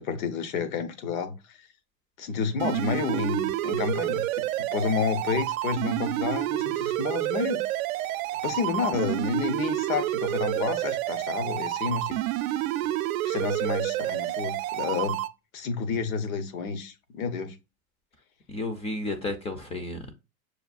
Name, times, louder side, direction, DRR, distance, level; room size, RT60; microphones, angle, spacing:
voice 1, 0.0-1.7 2.2-7.6 8.4-12.2 13.2-15.2 15.5-17.6, left 5 dB, 75° left, 1.0 m, -30 dB
sound 1, 2.6-15.3, right 15 dB, 75° right, 0.5 m, -29 dB
voice 2, 18.5-20.1, left 2 dB, 15° left, 0.4 m, -32 dB
6.7 x 2.3 x 2.4 m
supercardioid pair, 120°, 42 cm